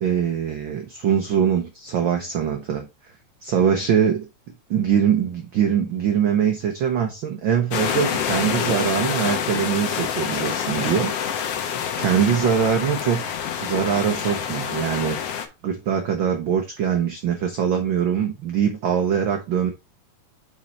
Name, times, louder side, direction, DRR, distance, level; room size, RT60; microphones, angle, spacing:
voice 1, 0.0-2.9 3.4-4.3 4.7-11.1 12.0-13.2 13.6-15.2 15.6-19.7, right 8 dB, 85° right, 1.0 m, -22 dB
sound 1, 7.7-15.5, left 8 dB, 65° left, 1.7 m, -27 dB
5.4 x 5.2 x 4.2 m
omnidirectional pair, 3.4 m